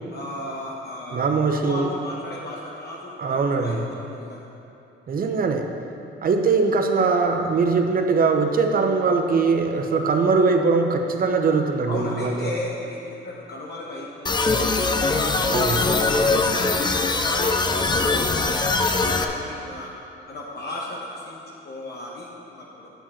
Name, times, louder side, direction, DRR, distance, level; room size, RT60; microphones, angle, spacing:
voice 1, 0.1-1.3 1.6-4.4 11.9-15.0 15.4-17.8 18.2-19.9 20.3-21.4 21.6-22.9, left 1 dB, 55° left, -4 dB, 1.1 m, -35 dB
voice 2, 1.1-1.9 3.2-3.8 5.1-5.7 6.2-12.5 15.5-15.9, right 4 dB, 45° right, 5 dB, 0.8 m, -21 dB
sound 1, 14.3-19.3, left 3 dB, 20° left, 0.5 m, -21 dB
9.2 x 7.3 x 4.3 m, 2.9 s
cardioid pair, 90°, 20 cm